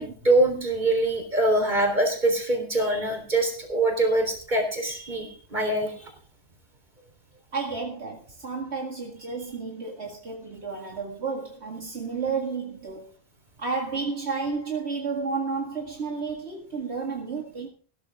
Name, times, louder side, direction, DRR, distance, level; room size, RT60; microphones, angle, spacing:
voice 1, 0.0-5.9, right 2 dB, 45° right, 4.0 m, -24 dB
voice 2, 7.5-13.2 13.6-17.7, right 4 dB, 75° right, 2.4 m, -31 dB
16.0 x 13.0 x 3.6 m
omnidirectional pair, 1.1 m